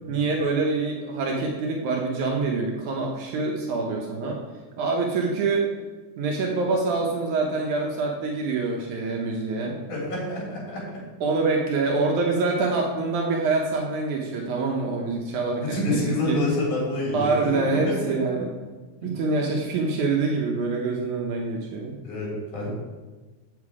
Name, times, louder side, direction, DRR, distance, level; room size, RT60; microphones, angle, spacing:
voice 1, 0.1-4.4 4.8-5.6 6.2-9.8 11.2-16.0 16.2-16.4 17.1-18.5 19.0-22.0, right 3 dB, 75° right, 0 dB, 2.3 m, -25 dB
voice 2, 9.9-11.0 15.6-18.0 22.0-22.7, left 1 dB, 75° left, -5 dB, 4.8 m, -28 dB
8.2 x 8.0 x 4.8 m, 1.3 s
omnidirectional pair, 3.6 m